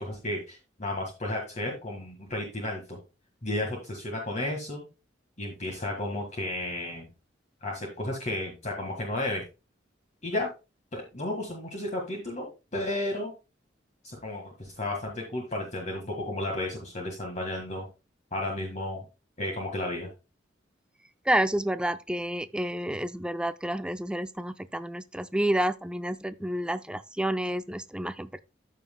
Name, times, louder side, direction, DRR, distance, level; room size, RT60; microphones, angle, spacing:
voice 1, 0.0-3.0 3.4-4.8 5.4-7.1 7.6-9.4 10.2-10.5 10.9-12.5 12.7-13.3 14.0-17.9 18.3-19.0 19.4-20.1, left 1 dB, 40° left, 1.7 m, -33 dB
voice 2, 21.3-28.4, right 1 dB, 5° right, 0.4 m, -29 dB
13.5 x 5.6 x 2.2 m
head